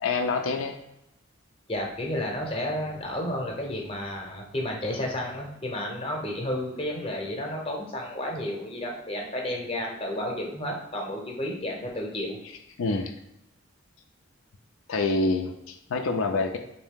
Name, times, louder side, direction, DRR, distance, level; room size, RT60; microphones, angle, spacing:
voice 1, 0.0-0.8 12.8-13.1 14.9-16.6, left 3 dB, 80° left, 4 dB, 0.4 m, -26 dB
voice 2, 1.7-12.4, left 1 dB, 30° left, 0 dB, 0.7 m, -32 dB
3.5 x 2.7 x 3.6 m, 0.84 s
head